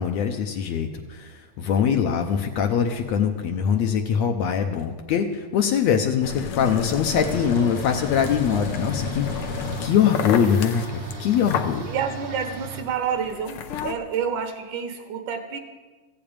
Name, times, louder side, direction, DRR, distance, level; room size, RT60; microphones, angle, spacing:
voice 1, 0.0-11.9, left 7 dB, 70° left, 4 dB, 1.8 m, -23 dB
sound 1, 6.2-13.9, left 7 dB, 85° left, 1.2 m, -32 dB
sound 2, 7.1-12.8, right 5 dB, 35° right, 1.0 m, -36 dB
voice 2, 11.9-15.6, right 7 dB, 75° right, 6 dB, 2.6 m, -29 dB
15.0 x 6.8 x 8.8 m, 1.3 s
omnidirectional pair, 3.6 m